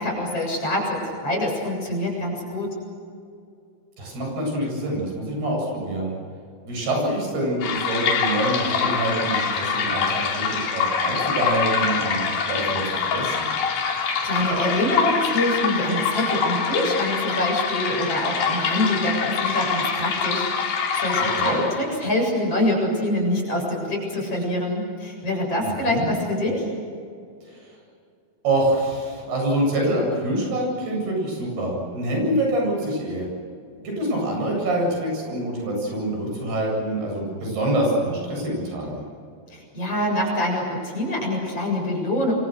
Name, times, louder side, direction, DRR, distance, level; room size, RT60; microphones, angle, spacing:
voice 1, 0.0-2.7 13.9-26.7 39.5-42.3, left 1 dB, 40° left, -1 dB, 8.5 m, -25 dB
voice 2, 4.0-6.2 6.6-13.4 21.4-21.6 25.6-26.1 27.5-27.7 28.4-33.3 33.8-39.0, right 1 dB, 90° right, 0 dB, 10.0 m, -26 dB
sound 1, 7.6-21.9, left 6 dB, 75° left, 4.9 m, -25 dB
29.0 x 24.5 x 6.6 m, 2.3 s
omnidirectional pair, 4.4 m